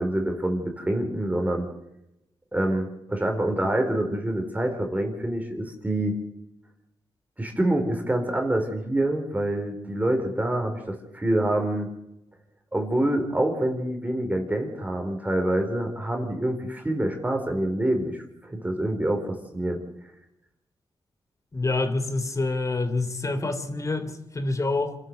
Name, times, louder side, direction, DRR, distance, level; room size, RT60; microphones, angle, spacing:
voice 1, 0.0-1.7 2.5-6.2 7.4-11.9 12.7-19.8, right 1 dB, 15° right, 4.3 m, -26 dB
voice 2, 21.5-25.0, left 3 dB, 35° left, 3.2 m, -27 dB
27.5 x 12.0 x 8.0 m
cardioid pair, 75°, 9 cm